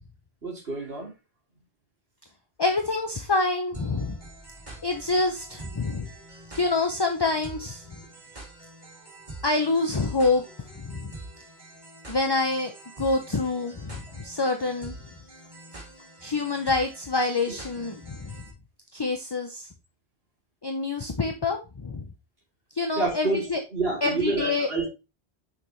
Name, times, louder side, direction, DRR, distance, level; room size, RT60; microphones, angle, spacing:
voice 1, 0.4-1.1 17.5-17.6 23.0-24.9, right 3 dB, 65° right, -1 dB, 3.2 m, -28 dB
voice 2, 2.6-4.2 4.8-6.1 6.5-7.8 9.4-10.4 10.8-11.1 12.1-12.7 13.0-14.9 16.2-18.3 18.9-19.7 20.6-22.0 22.7-23.6 24.0-24.7, left 3 dB, 25° left, 5 dB, 0.7 m, -26 dB
sound 1, 3.7-18.5, right 2 dB, 45° right, 2.7 m, -45 dB
6.5 x 6.0 x 3.1 m, 0.27 s
omnidirectional pair, 1.1 m